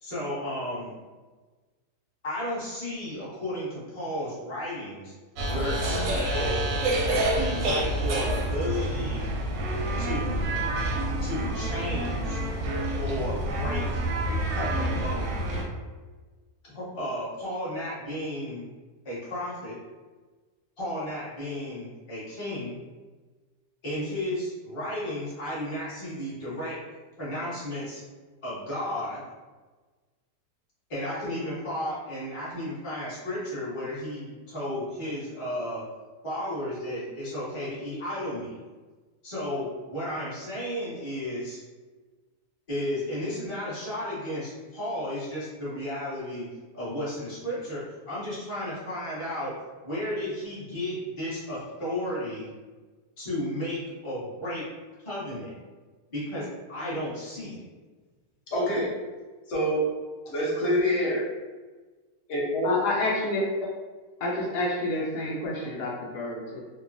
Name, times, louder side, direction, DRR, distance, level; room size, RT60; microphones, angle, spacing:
voice 1, 0.0-0.9 2.2-5.1 5.5-6.7 7.3-9.3 10.0-10.6 11.2-12.4 13.0-14.0 14.5-15.3 16.7-18.6 19.0-19.8 20.8-22.8 23.8-26.8 27.2-28.0 28.4-29.2 30.9-35.9 36.2-38.6 39.2-41.6 42.7-49.5 49.8-52.5 53.2-54.7 55.0-55.6 56.1-57.6, left 1 dB, 25° left, -9 dB, 0.9 m, -33 dB
sound 1, 5.4-15.6, right 1 dB, 70° right, 0.9 m, -28 dB
voice 2, 58.5-58.9 59.5-59.8 60.2-61.2 62.3-62.8, equal, 55° left, -5 dB, 1.0 m, -25 dB
voice 3, 62.6-63.4 64.2-66.6, left 2 dB, 80° left, -4 dB, 1.2 m, -29 dB
3.0 x 2.2 x 2.5 m, 1.3 s
omnidirectional pair, 1.7 m